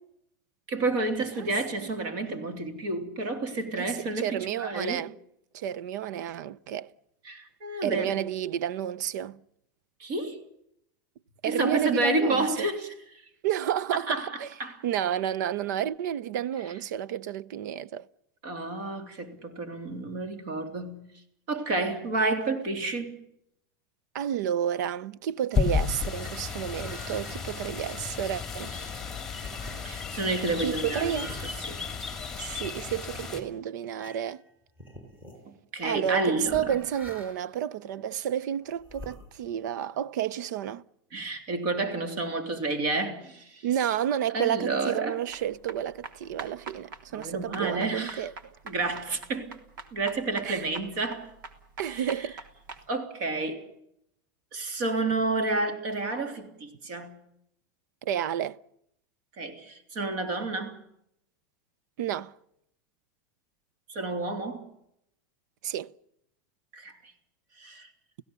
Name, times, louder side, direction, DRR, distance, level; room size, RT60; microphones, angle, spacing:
voice 1, 0.7-5.0 7.3-8.2 10.0-10.4 11.5-12.9 13.9-14.3 14.6-14.8 18.4-21.1 21.5-23.2 29.8-31.1 31.4-31.8 35.5-36.8 41.1-43.7 44.3-45.2 47.1-48.3 48.7-49.5 49.9-51.3 51.9-52.3 52.9-53.6 54.5-57.1 59.4-60.8 63.9-64.7 66.7-67.1 67.6-67.9, right 2 dB, 40° right, 3.4 m, -30 dB
voice 2, 3.8-5.1 5.5-6.9 7.8-9.4 11.4-12.7 13.4-14.5 14.8-18.1 24.1-28.7 30.6-31.3 32.3-34.4 35.8-40.8 43.6-48.3 50.4-50.6 51.8-52.4 58.0-58.6 62.0-62.3 65.6-65.9, right 10 dB, 60° right, 0.8 m, -31 dB
sound 1, 25.5-33.4, left 6 dB, 5° left, 2.5 m, -33 dB
sound 2, 25.7-32.8 33.3-33.5 33.9-34.5 34.8-35.4 36.0-37.6 38.1-39.7, left 1 dB, 15° right, 5.7 m, -48 dB
sound 3, 45.3-52.8, right 4 dB, 80° right, 3.3 m, -44 dB
30.0 x 16.5 x 6.9 m
supercardioid pair, 180°, 11 cm